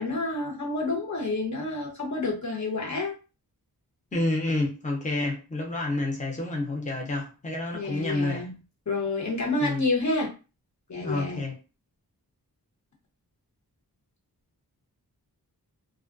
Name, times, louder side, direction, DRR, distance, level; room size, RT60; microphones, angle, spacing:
voice 1, 0.0-3.2 7.7-8.6 8.9-10.3 10.9-11.4, left 2 dB, 50° left, 0.9 m, -29 dB
voice 2, 4.1-8.5 9.6-9.8 11.0-11.5, left 2 dB, 20° left, 0.8 m, -29 dB
2.3 x 2.1 x 2.4 m
wide cardioid pair, 55°, 38 cm